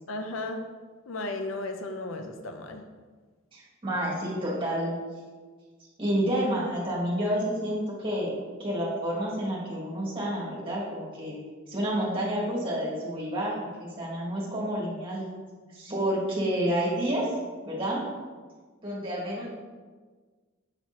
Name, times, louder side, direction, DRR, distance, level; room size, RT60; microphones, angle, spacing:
voice 1, 0.1-0.6 1.1-2.8 17.7-17.8, left 2 dB, 80° left, 5 dB, 0.6 m, -35 dB
voice 2, 3.5-5.0 6.0-8.3 8.6-11.4 11.7-15.3 15.7-17.3 17.6-18.0 18.8-19.5, equal, 25° right, -6 dB, 1.7 m, -29 dB
5.9 x 5.9 x 2.9 m, 1.4 s
head